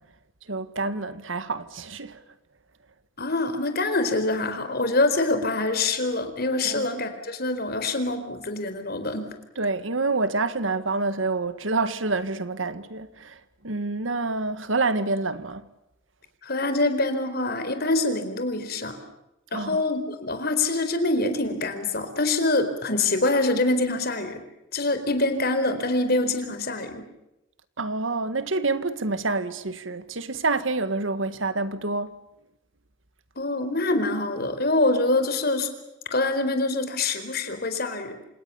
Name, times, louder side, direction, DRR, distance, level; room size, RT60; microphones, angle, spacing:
voice 1, 0.5-2.2 6.6-6.9 9.6-15.7 19.5-19.8 27.8-32.2, right 3 dB, 85° right, 1.8 m, -27 dB
voice 2, 3.2-9.3 16.4-19.0 19.5-24.4 24.7-27.1 33.4-35.7 36.1-38.2, left 2 dB, 55° left, 4.3 m, -25 dB
28.0 x 28.0 x 7.1 m
head